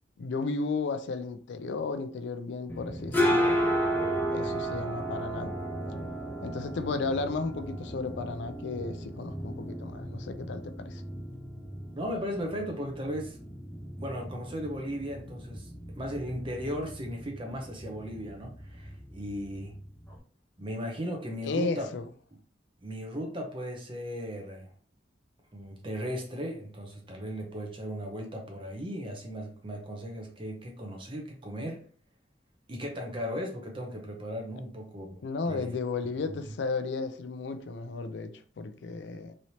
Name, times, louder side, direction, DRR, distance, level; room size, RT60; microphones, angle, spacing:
voice 1, 0.2-3.6 4.3-5.5 6.4-11.0 21.4-22.0 35.2-39.3, left 4 dB, 70° left, 0.4 m, -34 dB
sound 1, 2.7-20.2, equal, 10° left, 0.5 m, -34 dB
voice 2, 12.0-13.4 14.0-15.7 16.0-19.7 20.6-21.9 22.8-24.7 25.5-31.8 32.7-35.7 36.3-36.4, equal, 30° right, 0.6 m, -36 dB
3.1 x 2.8 x 2.7 m
head